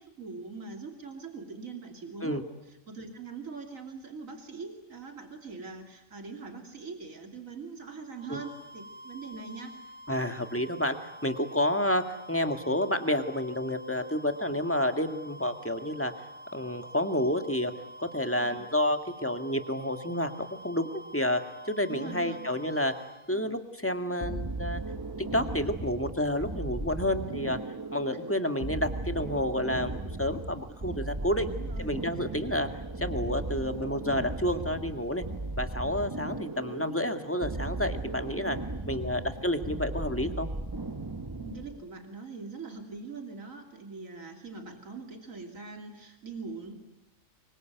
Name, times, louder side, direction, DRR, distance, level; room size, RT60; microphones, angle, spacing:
voice 1, 0.2-9.7 18.4-18.6 21.9-22.4 28.1-28.4 31.5-31.9 38.8-39.1 41.4-46.7, right 4 dB, 85° right, 4 dB, 3.3 m, -42 dB
sound 1, 8.1-23.4, equal, 60° right, 4.5 m, -48 dB
voice 2, 10.1-16.1 16.5-17.7 18.0-21.4 21.7-22.9 23.3-24.8 25.3-27.6 27.9-31.5 31.8-32.7 33.0-35.2 35.6-38.6 38.9-40.5, left 1 dB, 10° left, 7 dB, 2.0 m, -30 dB
sound 2, 24.2-41.8, right 2 dB, 15° right, 1.1 m, -37 dB
25.0 x 24.0 x 9.3 m, 0.94 s
omnidirectional pair, 1.4 m